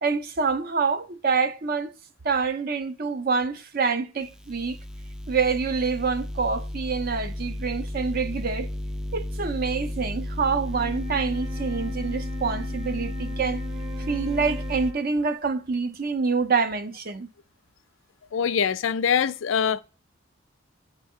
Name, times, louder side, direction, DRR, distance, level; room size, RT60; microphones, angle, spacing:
voice 1, 0.0-1.9 2.2-4.8 5.3-8.7 9.1-13.6 14.1-17.3, right 5 dB, 45° right, 0.6 m, -26 dB
sound 1, 4.2-14.9, left 1 dB, 5° right, 0.3 m, -33 dB
Wind instrument woodwind instrument, 10.5-15.3, left 4 dB, 25° right, 1.6 m, -40 dB
voice 2, 18.3-19.8, left 7 dB, 80° left, 0.4 m, -23 dB
10.0 x 3.7 x 3.6 m
head